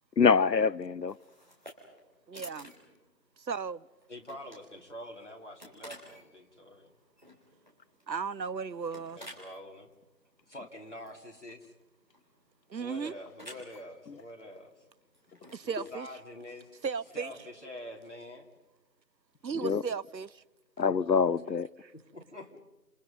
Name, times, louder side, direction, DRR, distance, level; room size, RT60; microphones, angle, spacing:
voice 1, 0.2-1.2 19.6-19.8 20.8-21.7, left 5 dB, 80° left, 0.8 m, -25 dB
sound 1, 1.1-17.6, equal, 25° right, 3.4 m, -54 dB
voice 2, 2.3-2.7 3.4-3.9 8.1-9.2 12.7-13.1 15.5-16.1 16.8-17.3 19.4-20.4 21.8-21.9, right 6 dB, 90° right, 0.8 m, -35 dB
voice 3, 4.1-6.9 9.1-9.9 10.5-11.7 12.8-14.8 15.6-16.7 17.1-18.5 21.9-22.6, left 1 dB, 45° left, 3.2 m, -46 dB
29.5 x 28.0 x 5.4 m
figure-of-eight pair, 180°, 50 cm